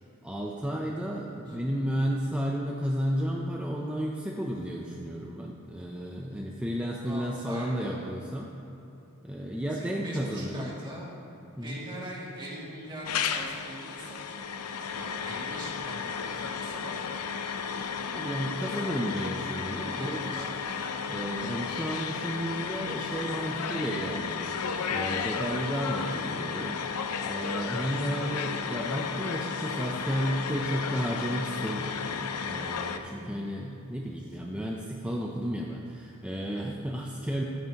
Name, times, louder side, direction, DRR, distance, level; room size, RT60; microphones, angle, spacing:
voice 1, 0.2-8.5 9.2-10.7 11.6-11.8 18.1-20.5 21.1-24.5 24.9-26.8 27.2-37.4, equal, 5° right, -1 dB, 0.5 m, -32 dB
voice 2, 7.0-8.0 9.7-11.1 11.6-14.2 14.9-17.0 19.8-20.9, right 1 dB, 20° right, -6 dB, 2.2 m, -42 dB
sound 1, 13.1-33.0, left 6 dB, 80° left, 0.6 m, -33 dB
13.5 x 9.2 x 2.9 m, 2.9 s
head